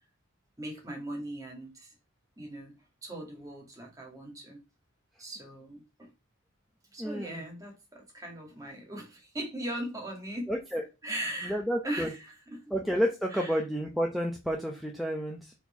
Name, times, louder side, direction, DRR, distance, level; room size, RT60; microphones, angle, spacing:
voice 1, 0.6-1.9 2.4-2.7 3.0-4.6 5.2-6.1 6.9-10.5 11.0-12.2 12.5-12.6 13.3-13.5, right 1 dB, 15° right, 2.2 m, -39 dB
voice 2, 7.0-7.4 10.5-10.8 11.4-12.1 12.7-15.5, equal, ahead, 0.9 m, -30 dB
4.5 x 4.5 x 5.6 m
head